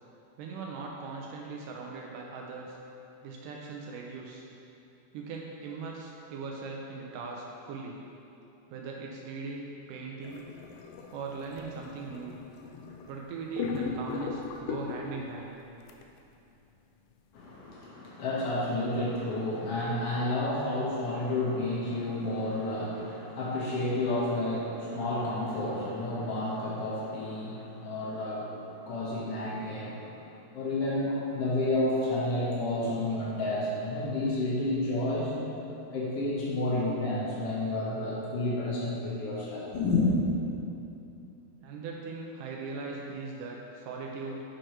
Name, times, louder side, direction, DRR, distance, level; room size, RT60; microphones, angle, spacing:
voice 1, 0.4-2.8 3.2-4.5 5.1-8.0 8.7-10.5 11.1-12.4 13.0-15.6 41.6-44.4, right 4 dB, 80° right, -1 dB, 1.9 m, -39 dB
sound 1, 10.2-13.2 13.6-15.3 15.9-16.0, left 5 dB, 80° left, 2.1 m, -38 dB
voice 2, 17.3-35.3 35.9-40.1, left 2 dB, 65° left, -6 dB, 1.5 m, -30 dB
7.7 x 4.6 x 4.4 m, 2.9 s
omnidirectional pair, 4.3 m